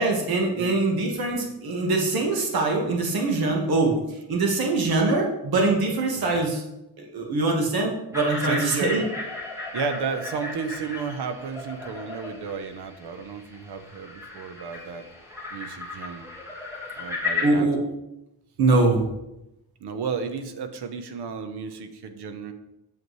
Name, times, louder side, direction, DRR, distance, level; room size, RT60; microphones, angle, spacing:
voice 1, 0.0-4.0 4.3-6.6 7.0-9.0 17.4-17.8 18.6-19.0, right 3 dB, 65° right, 1 dB, 1.5 m, -23 dB
sound 1, 8.1-17.5, left 3 dB, 5° right, 1.6 m, -35 dB
voice 2, 8.4-9.1 9.7-15.1 15.5-16.3 17.0-17.7 19.8-22.5, right 5 dB, 85° right, 8 dB, 0.9 m, -32 dB
8.0 x 7.1 x 3.2 m, 0.90 s
wide cardioid pair, 175°, 39 cm